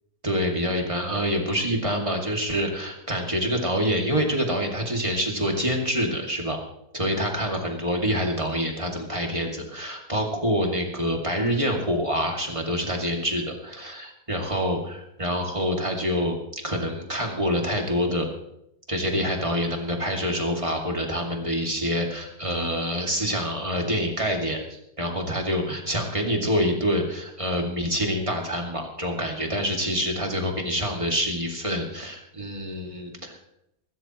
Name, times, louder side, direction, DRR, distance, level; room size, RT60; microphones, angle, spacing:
voice 1, 0.2-6.6 6.9-18.3 18.9-33.4, equal, 20° right, 1 dB, 2.4 m, -26 dB
24.0 x 13.5 x 3.1 m, 0.79 s
omnidirectional pair, 1.8 m